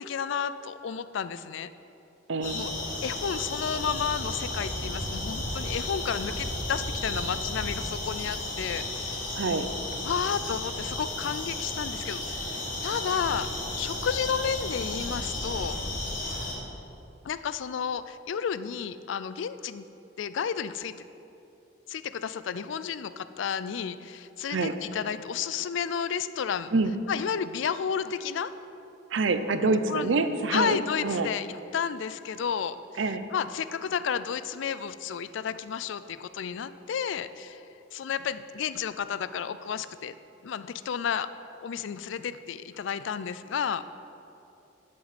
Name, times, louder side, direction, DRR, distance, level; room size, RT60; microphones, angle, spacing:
voice 1, 0.0-1.7 2.5-2.7 3.0-9.4 10.0-13.5 13.8-15.8 17.2-19.8 20.2-21.0 21.9-26.7 27.1-28.5 29.9-30.1 30.5-32.8 33.3-37.6 37.9-40.1 40.4-41.3 41.6-43.9, left 7 dB, 70° left, 14 dB, 0.4 m, -32 dB
voice 2, 2.3-2.6 9.3-9.7 24.5-24.7 26.7-27.0 29.1-31.3 33.0-33.3, right 3 dB, 65° right, 10 dB, 0.5 m, -26 dB
sound 1, 2.4-16.5, left 2 dB, 40° left, 1.8 m, -33 dB
11.0 x 7.8 x 4.1 m, 2.8 s
head